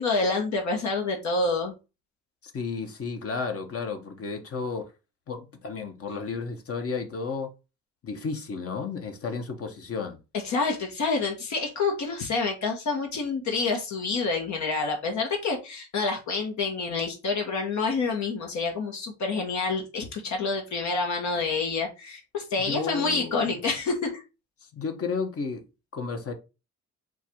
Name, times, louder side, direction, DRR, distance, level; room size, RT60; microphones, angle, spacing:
voice 1, 0.0-1.7 10.4-24.2, left 4 dB, 70° left, 1.3 m, -28 dB
voice 2, 2.5-4.9 5.3-7.5 8.0-10.2 22.6-23.5 24.7-25.6 25.9-26.3, left 4 dB, 50° left, 1.1 m, -32 dB
4.5 x 2.4 x 4.4 m
cardioid pair, 90°, 30 cm